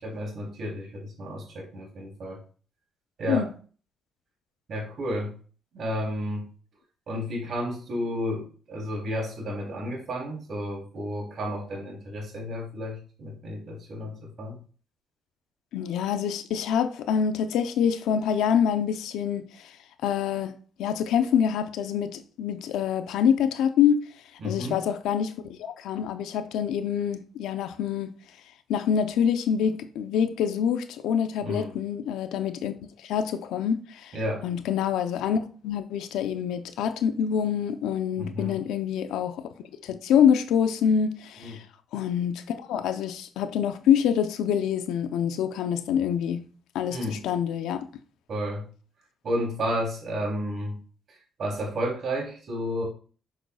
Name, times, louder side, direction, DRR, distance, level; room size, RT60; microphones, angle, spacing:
voice 1, 0.0-2.4 3.2-3.5 4.7-5.3 5.7-6.5 7.1-14.6 24.4-24.8 31.4-31.7 34.1-34.4 38.2-38.6 41.4-41.6 46.9-47.2 48.3-48.7 49.2-50.8 51.1-52.8, equal, 55° right, 3.1 m, -32 dB
voice 2, 15.7-19.5 20.0-24.0 24.4-28.1 28.7-34.1 34.4-39.4 39.8-41.6 41.9-46.5 46.7-47.9, left 8 dB, 85° left, 0.6 m, -26 dB
6.5 x 6.4 x 2.3 m
cardioid pair, 90°, 0 cm